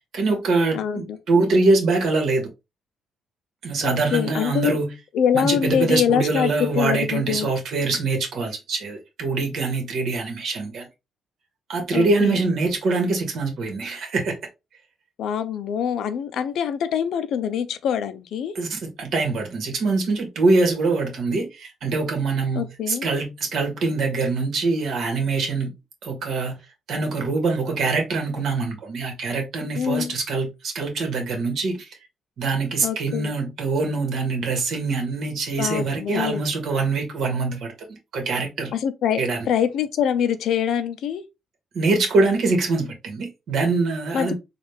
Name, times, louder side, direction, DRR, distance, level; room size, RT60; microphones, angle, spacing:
voice 1, 0.1-2.5 3.6-4.9 5.3-10.9 11.7-14.3 18.5-25.7 26.0-26.6 26.9-31.9 32.4-38.7 39.2-39.4 41.7-44.3, right 3 dB, 70° right, 1.6 m, -24 dB
voice 2, 0.7-1.2 3.8-4.8 5.1-7.5 11.9-12.4 15.2-18.5 22.6-23.1 29.8-30.2 32.8-33.3 35.6-36.4 38.7-39.2 39.5-41.2 44.1-44.3, left 8 dB, 75° left, 0.5 m, -24 dB
4.1 x 2.4 x 3.4 m
cardioid pair, 90°, 0 cm